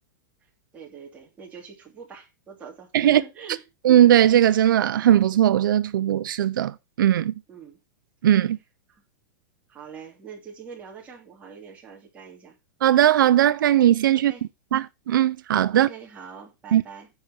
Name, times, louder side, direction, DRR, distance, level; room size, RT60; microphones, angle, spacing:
voice 1, 0.7-3.6 7.5-7.8 8.9-9.0 9.7-12.6 14.2-14.5 15.7-17.1, right 7 dB, 15° right, 2.6 m, -43 dB
voice 2, 3.8-7.3 8.2-8.6 12.8-14.3 14.7-15.9 16.7-16.8, right 11 dB, 85° right, 0.7 m, -19 dB
9.9 x 5.1 x 5.6 m
supercardioid pair, 175°, 11 cm